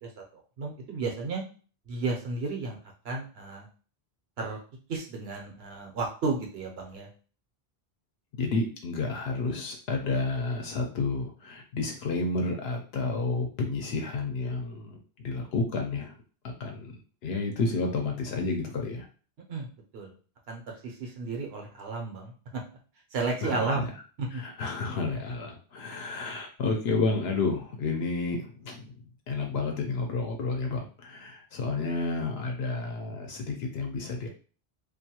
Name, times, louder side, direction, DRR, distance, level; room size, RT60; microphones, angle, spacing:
voice 1, 0.0-1.4 1.9-2.8 3.0-3.7 4.4-4.6 4.9-7.1 19.5-20.1 20.5-22.6 23.1-23.9 24.2-24.4, right 3 dB, 75° right, 1 dB, 1.0 m, -33 dB
voice 2, 8.3-16.2 16.4-16.9 17.2-19.1 23.4-23.9 24.3-29.0 29.3-34.3, left 3 dB, 75° left, 2 dB, 0.8 m, -31 dB
2.5 x 2.2 x 2.8 m, 0.38 s
omnidirectional pair, 1.1 m